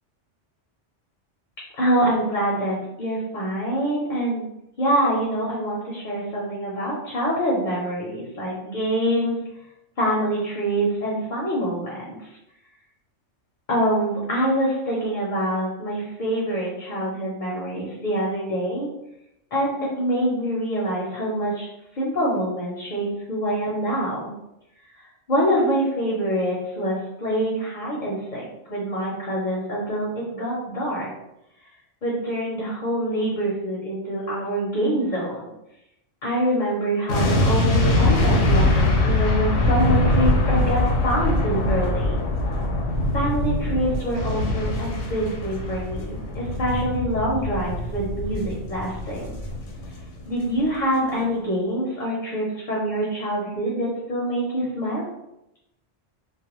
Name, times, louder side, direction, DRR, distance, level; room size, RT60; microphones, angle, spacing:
voice 1, 1.8-4.4 4.8-9.4 10.0-12.2 13.7-18.9 19.5-21.7 21.9-24.3 25.3-31.1 32.0-35.5 36.2-42.2 43.1-49.3 50.3-55.0, right 1 dB, 50° left, -5 dB, 0.6 m, -25 dB
sound 1, 37.1-50.2 50.5-50.7, left 1 dB, 80° left, 0.9 m, -23 dB
2.3 x 2.1 x 2.9 m, 0.86 s
omnidirectional pair, 1.2 m